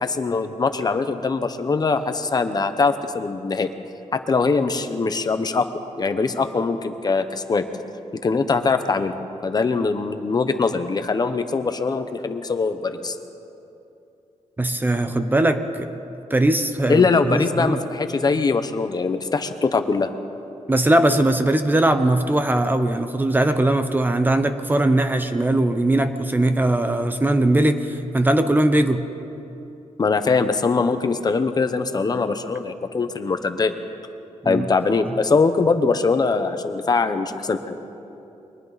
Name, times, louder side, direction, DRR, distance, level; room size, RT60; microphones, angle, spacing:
voice 1, 0.0-3.7 4.1-5.7 6.0-7.6 8.2-13.2 16.9-20.1 30.0-33.7 34.4-37.8, left 4 dB, 35° left, 8 dB, 1.0 m, -22 dB
voice 2, 14.6-15.9 16.3-17.8 20.7-29.0 34.4-34.6 35.1-35.2, right 1 dB, 15° right, 8 dB, 0.8 m, -20 dB
30.0 x 23.5 x 4.2 m, 2.8 s
wide cardioid pair, 150°, 12 cm